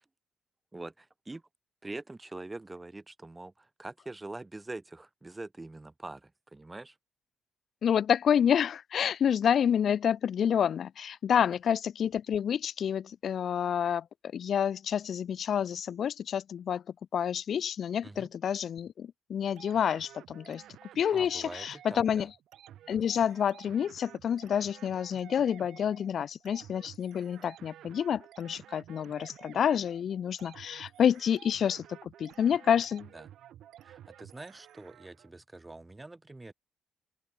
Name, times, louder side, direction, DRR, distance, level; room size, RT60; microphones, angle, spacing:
voice 1, 0.7-1.4 1.8-7.0 18.0-18.3 21.1-22.3 33.1-33.3 33.8-36.5, right 2 dB, 15° right, 8.0 m, -44 dB
voice 2, 7.8-14.0 14.3-16.8 17.1-20.6 21.0-22.3 22.9-31.8 32.2-33.1, left 8 dB, 60° left, 1.4 m, -28 dB
sound 1, 19.6-35.3, right 11 dB, 75° right, 5.2 m, -53 dB
open air
cardioid pair, 90°, 0 cm